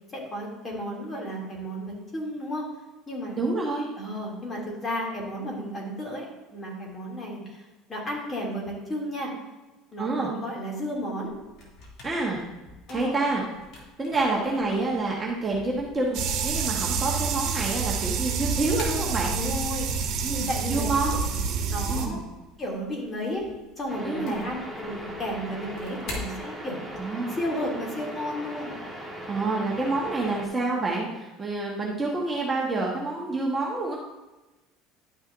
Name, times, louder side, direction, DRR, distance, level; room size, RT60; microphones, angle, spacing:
voice 1, 0.1-2.6 3.1-3.4 4.0-7.6 7.9-9.3 9.9-11.3 12.9-13.2 14.3-14.8 19.3-19.9 20.3-21.1 21.7-22.2 22.6-23.5 23.8-26.8 27.3-28.8 31.6-31.9, equal, 25° left, -3 dB, 2.9 m, -33 dB
voice 2, 3.4-3.9 10.0-10.3 12.0-12.4 12.9-13.4 14.0-19.4 20.2-21.2 21.9-22.2 24.0-24.4 27.0-27.4 29.3-34.0, right 3 dB, 20° right, -3 dB, 1.4 m, -28 dB
sound 1, 11.2-27.1, left 2 dB, 60° left, 2.8 m, -46 dB
sound 2, 16.1-22.1, right 5 dB, 60° right, 1.4 m, -28 dB
sound 3, 23.9-30.5, equal, 5° left, 1.5 m, -38 dB
12.0 x 6.1 x 2.7 m, 1.1 s
supercardioid pair, 115°, 0 cm